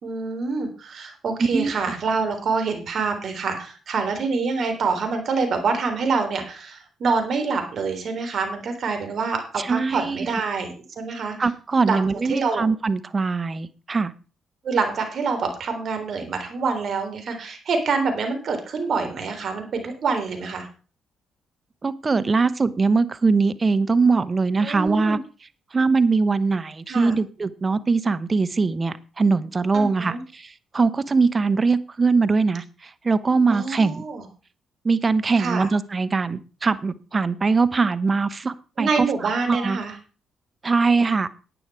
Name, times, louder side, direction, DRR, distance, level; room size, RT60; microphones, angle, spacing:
voice 1, 0.0-11.5 11.9-12.0 12.3-12.7 14.6-20.7 24.6-25.2 26.9-27.1 29.7-30.2 33.5-34.3 35.4-35.7 38.8-39.9, right 4 dB, 60° right, 5 dB, 3.4 m, -26 dB
voice 2, 9.6-10.4 11.4-14.1 21.8-25.2 25.7-32.6 33.0-34.0 34.8-39.1 39.5-39.8 40.6-41.3, right 4 dB, 35° right, 14 dB, 1.0 m, -21 dB
11.0 x 9.1 x 4.8 m, 0.35 s
hypercardioid pair, 50°, 0 cm